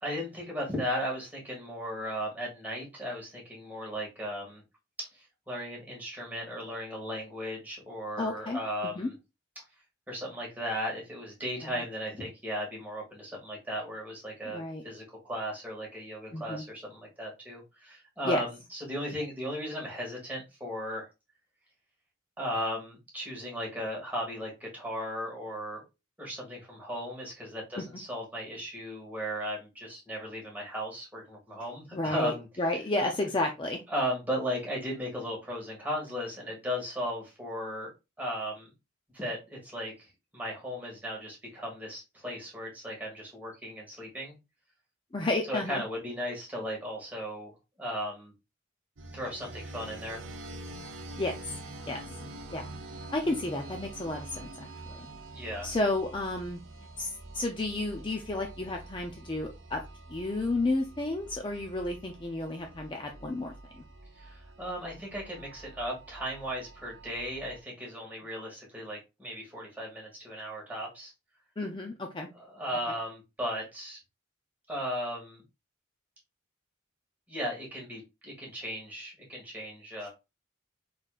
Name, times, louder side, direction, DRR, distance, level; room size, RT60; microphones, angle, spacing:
voice 1, 0.0-4.6 5.0-9.1 10.1-21.1 22.4-25.8 26.2-32.5 33.9-37.9 38.2-38.7 39.1-44.3 45.5-47.5 47.8-48.3 49.1-50.2 55.3-55.7 64.1-71.1 72.3-74.0 74.7-75.4 77.3-80.1, equal, 10° right, -3 dB, 1.9 m, -36 dB
voice 2, 8.2-8.6 9.0-9.1 11.6-11.8 14.5-14.8 16.3-16.6 18.2-18.4 31.9-33.8 45.1-45.8 51.2-51.6 51.9-52.0 52.5-52.6 53.1-54.5 54.9-55.1 55.6-56.6 57.0-59.8 60.1-63.8 71.6-72.3, left 2 dB, 25° left, 2 dB, 0.5 m, -32 dB
sound 1, 49.0-67.6, right 2 dB, 70° right, 0.8 m, -46 dB
4.9 x 4.2 x 2.4 m, 0.25 s
head